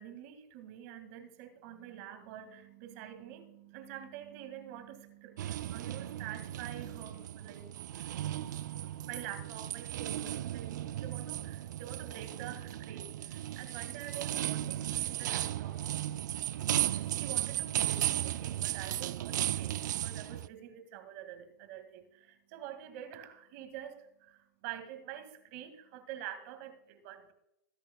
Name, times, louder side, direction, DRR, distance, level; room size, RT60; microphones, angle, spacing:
voice 1, 0.0-8.2 8.8-15.8 16.5-27.3, right 10 dB, 55° right, 8 dB, 2.1 m, -47 dB
sound 1, 5.4-20.5, right 12 dB, 80° right, 0.4 m, -35 dB
21.0 x 10.5 x 2.3 m, 0.85 s
supercardioid pair, 140°, 10 cm